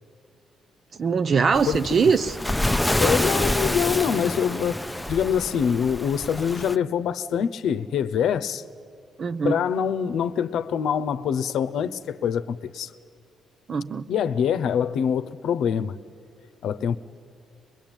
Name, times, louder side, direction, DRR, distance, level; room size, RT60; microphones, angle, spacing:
voice 1, 1.0-2.4 9.2-9.6 13.7-14.0, right 5 dB, 50° right, 0.6 m, -22 dB
Waves surf, 1.5-6.8, left 1 dB, 5° left, 0.6 m, -27 dB
voice 2, 1.6-2.0 2.7-8.6 9.4-12.9 14.1-15.9 16.6-17.0, left 8 dB, 75° left, 0.8 m, -25 dB
23.0 x 22.0 x 9.0 m
cardioid pair, 90°, 0 cm